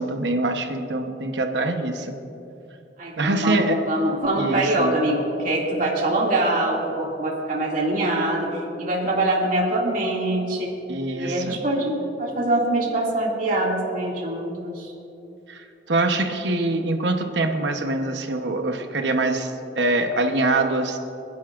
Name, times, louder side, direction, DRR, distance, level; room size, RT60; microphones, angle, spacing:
voice 1, 0.0-2.2 3.2-3.8 4.3-5.0 10.9-11.6 15.5-21.0, right 2 dB, 70° right, 5 dB, 1.0 m, -24 dB
voice 2, 3.0-8.5 8.8-10.7 11.2-14.9, right 1 dB, 45° right, -3 dB, 2.4 m, -24 dB
27.5 x 10.5 x 2.5 m, 2.8 s
head